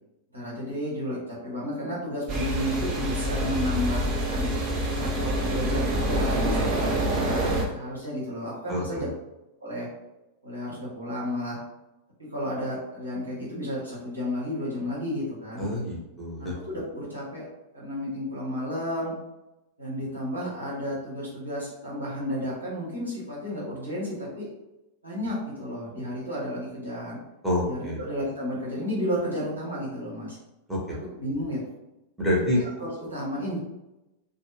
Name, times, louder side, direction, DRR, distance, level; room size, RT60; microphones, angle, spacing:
voice 1, 0.3-4.5 4.9-9.1 9.6-9.9 10.4-11.6 12.2-15.6 16.4-17.4 17.7-19.1 19.8-24.5 25.0-27.2 27.6-30.4 30.9-31.6 32.5-33.6, equal, 85° right, -8 dB, 1.2 m, -32 dB
sound 1, 2.3-7.6, right 1 dB, 35° right, 0.7 m, -26 dB
voice 2, 8.7-9.1 15.6-16.5 27.4-28.0 30.7-31.0 32.2-32.6, left 1 dB, ahead, -7 dB, 1.0 m, -27 dB
2.5 x 2.3 x 3.0 m, 0.96 s
figure-of-eight pair, 90°, 0 cm